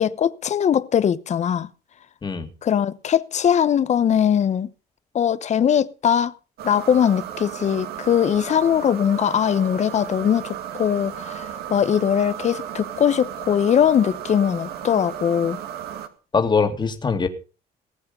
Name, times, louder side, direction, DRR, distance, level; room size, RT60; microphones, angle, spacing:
voice 1, 0.0-1.7 2.6-4.7 5.1-6.3 6.6-15.6, left 8 dB, 45° left, 1.0 m, -21 dB
voice 2, 2.2-2.5 16.3-17.3, left 5 dB, 25° left, 2.4 m, -22 dB
sound 1, 6.6-16.1, right 10 dB, 70° right, 2.2 m, -34 dB
19.5 x 8.6 x 5.5 m
cardioid pair, 110°, 17 cm